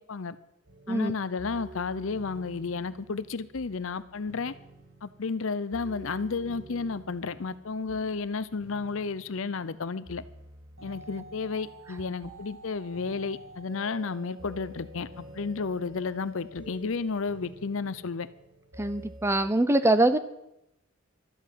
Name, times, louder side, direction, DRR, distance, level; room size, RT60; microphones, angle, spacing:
sound 1, 0.6-19.5, right 1 dB, 75° right, 5.5 m, -49 dB
voice 1, 0.9-4.5 5.0-10.2 10.8-18.3, left 4 dB, 70° left, 0.7 m, -32 dB
voice 2, 18.8-20.2, right 2 dB, 10° right, 0.6 m, -23 dB
12.5 x 9.2 x 7.6 m
head